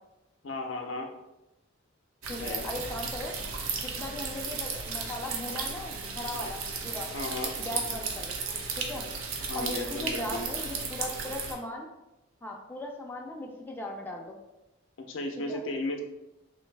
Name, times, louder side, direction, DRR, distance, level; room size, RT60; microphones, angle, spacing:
voice 1, 0.4-1.1 2.4-2.6 7.1-7.5 9.5-10.4 15.1-16.0, left 2 dB, 65° left, 3 dB, 0.5 m, -34 dB
sound 1, 2.2-11.5, right 4 dB, 85° right, 0.6 m, -35 dB
voice 2, 2.3-3.3 3.8-7.1 7.6-8.4 8.8-9.1 9.5-11.9 12.4-14.4 15.5-15.6, left 1 dB, 10° left, -1 dB, 0.4 m, -38 dB
3.1 x 2.6 x 3.2 m, 0.94 s
head